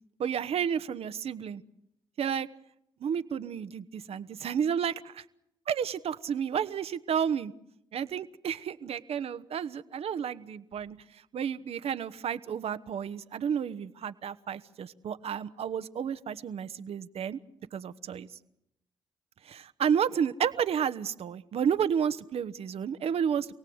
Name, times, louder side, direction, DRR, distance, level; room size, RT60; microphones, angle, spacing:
voice 1, 0.2-1.6 2.2-2.5 3.0-5.2 5.7-7.5 7.9-17.4 17.7-18.3 19.4-23.5, right 8 dB, 70° right, 12 dB, 1.0 m, -31 dB
27.5 x 18.0 x 7.9 m, 0.80 s
supercardioid pair, 50°, 11 cm